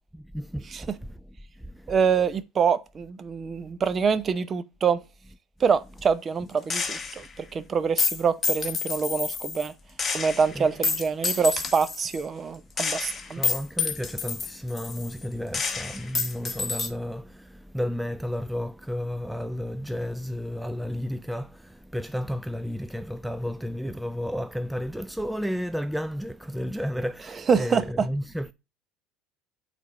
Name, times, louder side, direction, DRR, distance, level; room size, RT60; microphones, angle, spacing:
voice 1, 0.1-2.0 10.5-10.7 13.2-28.5, equal, 5° right, 0.4 m, -32 dB
voice 2, 1.9-5.0 5.6-9.7 10.1-13.4 27.5-27.8, right 6 dB, 35° right, 0.7 m, -25 dB
Gunshot gunfire, 6.7-7.3 8.0-9.7 10.0-12.2 12.8-15.2 15.5-16.9, left 5 dB, 30° left, 1.1 m, -29 dB
8.4 x 3.4 x 3.7 m
hypercardioid pair, 85°, 0 cm